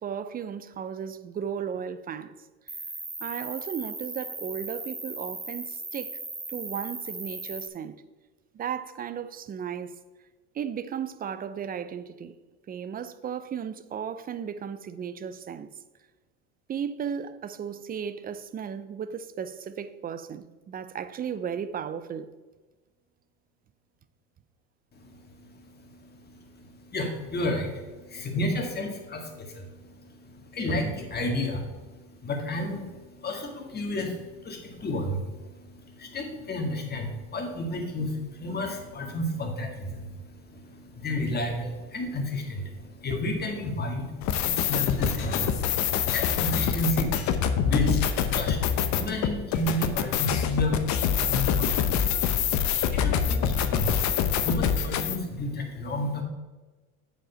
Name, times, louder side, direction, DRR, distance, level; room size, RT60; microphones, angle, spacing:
voice 1, 0.0-2.3 3.2-6.2 6.5-8.0 8.5-10.0 10.5-12.4 12.7-15.7 16.7-22.3, right 8 dB, 25° right, 0.5 m, -35 dB
Cricket, 2.7-7.7, right 2 dB, 10° right, 0.8 m, -37 dB
voice 2, 25.4-29.7 30.0-56.2, left 1 dB, 30° left, 1.9 m, -32 dB
sound 1, 44.2-55.2, left 8 dB, 55° left, 0.9 m, -25 dB
7.5 x 5.1 x 5.6 m
supercardioid pair, 95°, 34 cm